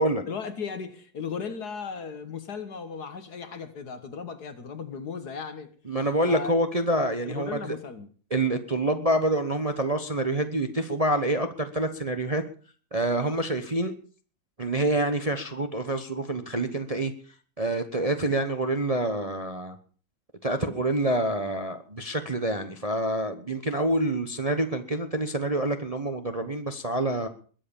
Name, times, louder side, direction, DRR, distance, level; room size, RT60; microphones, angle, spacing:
voice 1, 0.3-5.7 6.2-6.6 7.2-8.1, left 6 dB, 55° left, 2.0 m, -36 dB
voice 2, 5.9-7.7 8.3-12.4 12.9-13.9 14.6-17.1 17.6-19.8 20.4-27.3, right 1 dB, 25° right, 1.0 m, -27 dB
21.5 x 7.9 x 7.1 m
omnidirectional pair, 2.0 m